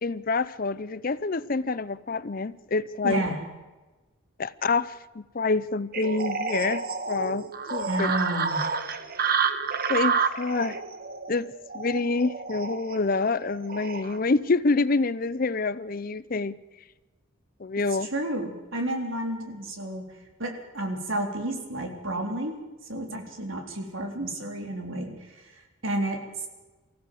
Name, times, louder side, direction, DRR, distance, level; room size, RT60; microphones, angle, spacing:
voice 1, 0.0-3.2 4.4-8.1 9.9-10.8 11.3-16.6 17.6-18.1, left 3 dB, 40° left, 16 dB, 0.6 m, -27 dB
voice 2, 3.0-3.4 7.9-8.6 18.0-20.0 20.4-22.5 22.9-25.5 25.8-26.2, right 1 dB, 70° right, 2 dB, 3.8 m, -31 dB
sound 1, 5.9-14.2, right 5 dB, 45° right, 1.2 m, -29 dB
24.0 x 15.5 x 7.7 m, 1.2 s
head